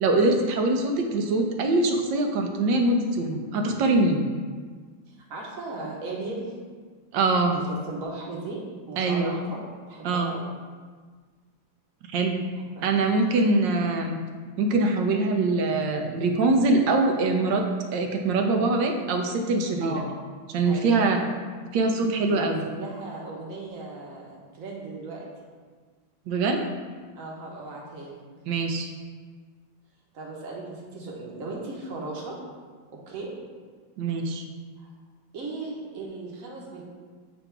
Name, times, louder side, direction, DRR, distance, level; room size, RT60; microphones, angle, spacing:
voice 1, 0.0-4.2 7.1-7.6 9.0-9.3 10.0-10.3 12.1-12.4 12.8-14.2 14.6-17.6 17.9-20.0 20.5-21.2 21.7-22.6 26.3-26.6 28.5-28.9 34.0-34.5, right 2 dB, 75° right, 3 dB, 1.3 m, -23 dB
voice 2, 5.1-6.5 7.5-10.5 12.7-13.1 19.8-20.1 20.6-21.3 22.3-25.3 27.2-28.2 30.1-32.4 32.9-33.3 34.8-34.9 35.3-36.8, right 2 dB, 50° right, -2 dB, 1.3 m, -37 dB
7.8 x 2.6 x 4.6 m, 1.5 s
omnidirectional pair, 2.1 m